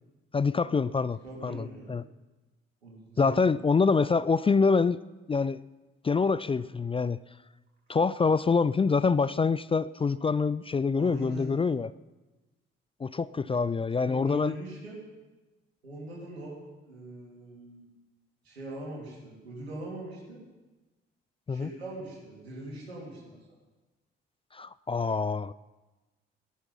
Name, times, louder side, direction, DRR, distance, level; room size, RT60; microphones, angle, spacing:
voice 1, 0.3-2.0 3.2-5.0 5.3-5.6 6.0-7.2 7.9-11.9 13.0-14.5 21.5-21.7 24.5-25.5, left 4 dB, 20° left, 17 dB, 0.4 m, -26 dB
voice 2, 1.2-2.0 2.8-3.7 10.9-11.5 13.3-13.6 14.0-15.0 15.8-16.6 16.8-17.9 18.4-20.4 21.5-23.4, right 2 dB, 85° right, -4 dB, 3.3 m, -42 dB
17.5 x 11.5 x 5.6 m, 1.2 s
figure-of-eight pair, 45°, 31 cm